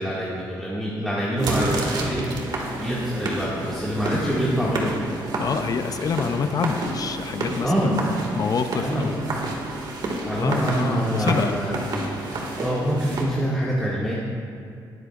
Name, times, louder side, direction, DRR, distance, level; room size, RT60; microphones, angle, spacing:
voice 1, 0.0-2.2 2.8-5.1 7.6-8.0 8.8-9.2 10.3-11.8 12.6-14.1, equal, ahead, -8 dB, 2.0 m, -25 dB
sound 1, 1.3-13.2, right 2 dB, 60° right, 2.0 m, -30 dB
voice 2, 5.4-8.0 8.4-9.2 10.4-11.6, left 6 dB, 45° left, 8 dB, 0.5 m, -27 dB
19.5 x 8.1 x 2.5 m, 2.4 s
cardioid pair, 100°, 8 cm